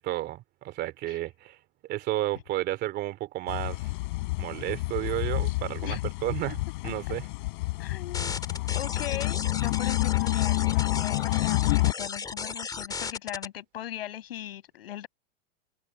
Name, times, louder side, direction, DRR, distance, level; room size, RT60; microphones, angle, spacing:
voice 1, 0.0-1.6 1.9-3.9 4.4-7.3, right 15 dB, 35° right, 2.8 m, -32 dB
sound 1, 3.5-11.9, left 21 dB, 60° left, 4.4 m, -28 dB
voice 2, 6.8-7.1 7.8-8.4 8.7-15.1, left 12 dB, 90° left, 6.8 m, -38 dB
sound 2, 8.1-13.4, left 5 dB, 15° left, 3.5 m, -36 dB
supercardioid pair, 150°, 29 cm